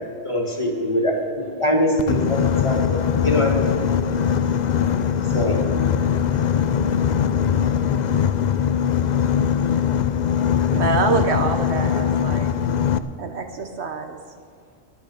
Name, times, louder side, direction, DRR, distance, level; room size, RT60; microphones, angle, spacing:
voice 1, 0.2-3.8 5.3-5.7, equal, 25° left, 0 dB, 1.6 m, -23 dB
Boat Water vehicle, 2.0-13.0, left 8 dB, 60° left, 0.4 m, -21 dB
voice 2, 4.6-6.9 7.4-8.0 10.6-11.0 13.0-13.1, equal, 20° right, -1 dB, 2.2 m, -44 dB
voice 3, 10.7-12.5 13.2-14.2, right 4 dB, 65° right, 6 dB, 1.1 m, -25 dB
12.0 x 11.0 x 6.9 m, 2.2 s
omnidirectional pair, 1.2 m